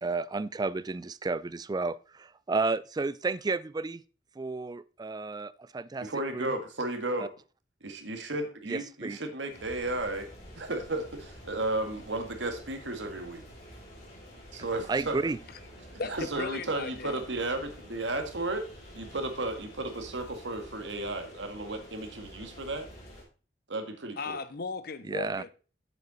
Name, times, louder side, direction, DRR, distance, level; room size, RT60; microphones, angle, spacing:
voice 1, 0.0-4.0 4.4-6.5 7.2-7.3 8.7-9.2 14.9-15.4 25.1-25.4, right 3 dB, 20° right, 0.4 m, -32 dB
voice 2, 6.0-7.3 7.8-10.3 10.6-13.4 14.5-15.2 15.9-18.7 18.9-22.9 23.7-24.4, right 2 dB, 85° right, 1.8 m, -34 dB
sound 1, 9.5-23.2, equal, 40° left, 4.9 m, -49 dB
voice 3, 16.0-17.2 24.2-25.5, left 4 dB, 60° left, 0.8 m, -37 dB
8.6 x 7.7 x 4.1 m
head